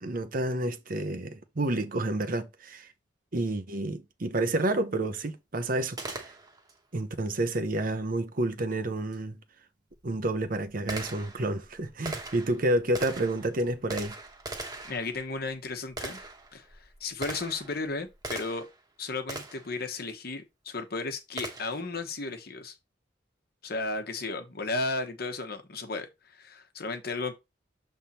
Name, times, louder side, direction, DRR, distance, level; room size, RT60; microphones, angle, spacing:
voice 1, 0.0-2.9 3.3-6.3 6.9-9.4 10.0-14.1, right 1 dB, 45° right, 0.7 m, -29 dB
Gunshot gunfire, 6.0-6.8 9.1-9.2 9.9-18.8 19.3-19.8 21.4-21.9, right 2 dB, 20° right, 1.1 m, -41 dB
voice 2, 14.8-16.2 16.5-18.7 19.0-22.7 23.6-27.3, left 3 dB, 50° left, 1.1 m, -34 dB
7.3 x 3.5 x 4.2 m
head